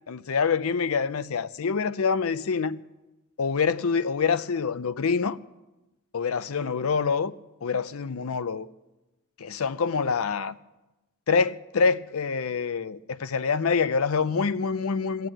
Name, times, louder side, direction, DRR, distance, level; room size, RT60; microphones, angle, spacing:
voice 1, 0.1-2.8 3.4-5.4 6.1-7.3 7.6-8.7 9.4-10.5 11.3-15.3, left 5 dB, 75° left, 0.5 m, -26 dB
15.5 x 8.2 x 9.1 m
head